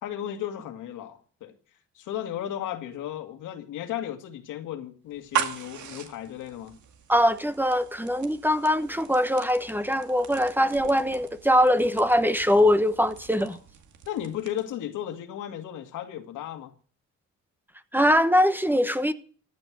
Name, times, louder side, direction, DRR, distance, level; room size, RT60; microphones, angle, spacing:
voice 1, 0.0-1.6 1.9-6.8 13.4-13.6 14.1-16.8, left 11 dB, 85° left, 2.2 m, -35 dB
sound 1, 5.1-14.8, right 9 dB, 70° right, 2.2 m, -39 dB
voice 2, 7.1-13.6 17.9-19.1, equal, 5° right, 1.1 m, -22 dB
14.5 x 9.7 x 6.1 m
cardioid pair, 90°, 30 cm